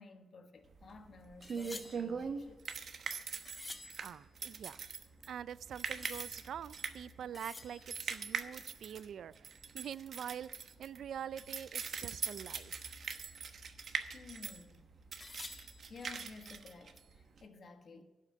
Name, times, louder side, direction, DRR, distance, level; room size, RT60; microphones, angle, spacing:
voice 1, 0.0-2.6 10.3-10.4 14.1-14.9 15.9-18.0, left 4 dB, 50° left, 1.4 m, -54 dB
Knife Sharpening, 0.6-16.6, left 2 dB, 20° left, 0.9 m, -55 dB
Keys Rattling, 0.7-17.4, right 6 dB, 55° right, 1.1 m, -42 dB
voice 2, 4.0-4.8 5.3-13.0, right 9 dB, 70° right, 0.3 m, -45 dB
11.5 x 6.5 x 8.5 m
cardioid pair, 110°, 0 cm